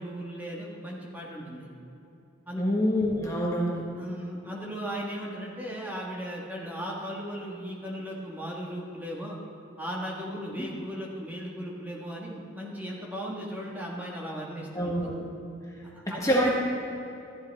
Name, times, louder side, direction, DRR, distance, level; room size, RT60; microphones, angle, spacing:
voice 1, 0.0-1.7 2.5-2.6 4.0-9.4 9.8-14.9 15.8-16.4, equal, 10° right, -3 dB, 1.5 m, -37 dB
voice 2, 2.6-3.8 10.6-10.7 14.7-15.3 16.1-16.5, equal, 15° left, -3 dB, 1.3 m, -26 dB
14.0 x 11.5 x 3.5 m, 2.8 s
head